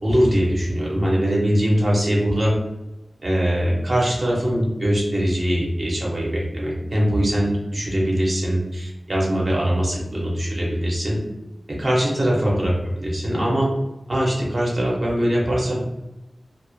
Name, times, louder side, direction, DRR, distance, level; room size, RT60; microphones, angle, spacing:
voice 1, 0.0-2.6 3.2-11.2 11.7-13.7 14.1-15.8, equal, 50° right, -4 dB, 0.6 m, -22 dB
2.0 x 2.0 x 2.9 m, 0.97 s
wide cardioid pair, 80°, 0 cm